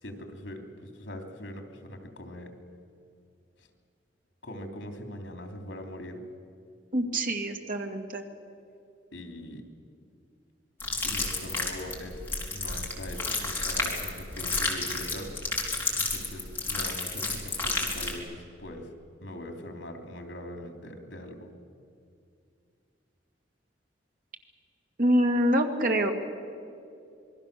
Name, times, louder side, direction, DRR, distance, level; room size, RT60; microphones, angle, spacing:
voice 1, 0.0-2.5 3.6-3.7 4.4-6.2 9.1-9.7 11.0-12.2 12.5-15.3 15.9-18.9 19.2-21.5, left 1 dB, 80° left, 4 dB, 3.3 m, -41 dB
voice 2, 6.9-8.2 25.0-26.1, equal, 50° right, 3 dB, 2.3 m, -25 dB
sound 1, 10.8-18.2, left 3 dB, 10° left, 3.8 m, -31 dB
27.0 x 22.0 x 6.9 m, 2.5 s
head